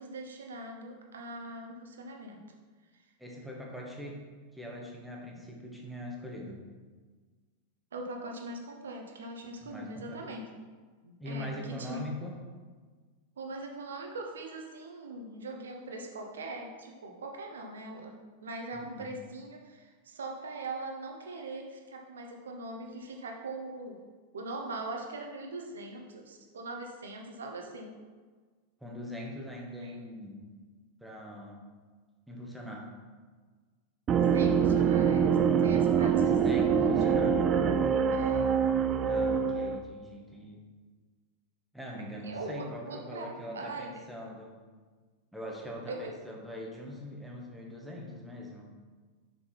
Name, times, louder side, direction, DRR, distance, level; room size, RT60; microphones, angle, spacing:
voice 1, 0.0-2.4 7.9-10.4 11.0-12.1 13.4-24.0 24.3-27.9 29.8-29.9 34.3-37.3 38.1-38.4 42.2-44.0 45.9-46.2, right 2 dB, 65° right, 2 dB, 1.1 m, -41 dB
voice 2, 3.2-4.2 4.5-6.6 9.6-10.2 11.2-12.4 18.7-19.1 28.8-30.5 31.0-31.6 32.3-32.9 34.5-34.9 36.4-37.4 39.0-40.6 41.7-44.6 45.3-48.7, equal, ahead, -2 dB, 1.5 m, -42 dB
sound 1, 34.1-39.8, right 7 dB, 30° right, 0.4 m, -25 dB
6.2 x 6.0 x 4.1 m, 1.5 s
figure-of-eight pair, 90°, 0 cm